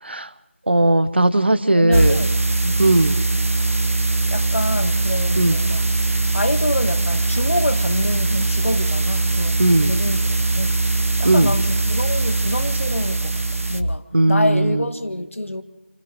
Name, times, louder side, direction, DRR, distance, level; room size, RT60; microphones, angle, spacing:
voice 1, 0.7-2.2 2.8-3.2 5.4-5.6 9.6-9.9 11.2-11.5 14.1-14.8, right 2 dB, 50° right, 13 dB, 1.2 m, -17 dB
voice 2, 1.7-2.8 4.3-5.9 6.3-10.8 11.2-15.6, left 1 dB, 70° left, 8 dB, 2.1 m, -27 dB
sound 1, 1.9-13.8, right 2 dB, 80° right, 1.6 m, -21 dB
29.5 x 26.5 x 3.3 m, 0.99 s
figure-of-eight pair, 175°, 7 cm